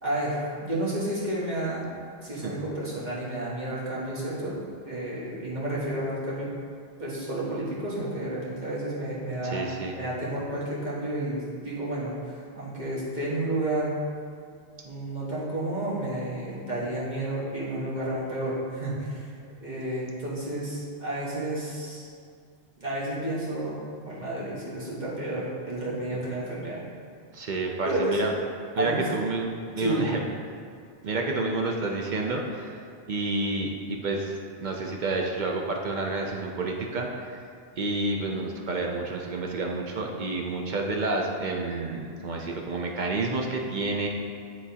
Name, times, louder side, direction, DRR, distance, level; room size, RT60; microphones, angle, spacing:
voice 1, 0.0-1.8 2.2-4.6 4.8-6.5 7.0-9.7 9.9-14.0 14.8-19.3 19.6-22.1 22.8-26.8 27.8-28.2 28.8-29.2 29.8-30.1, right 1 dB, 40° right, -7 dB, 1.4 m, -31 dB
voice 2, 9.4-10.0 26.1-26.2 27.3-28.3 28.8-30.2 31.0-32.8 33.1-37.4 37.8-44.1, right 3 dB, 55° right, 1 dB, 0.5 m, -29 dB
9.5 x 3.9 x 2.8 m, 2.3 s
omnidirectional pair, 1.2 m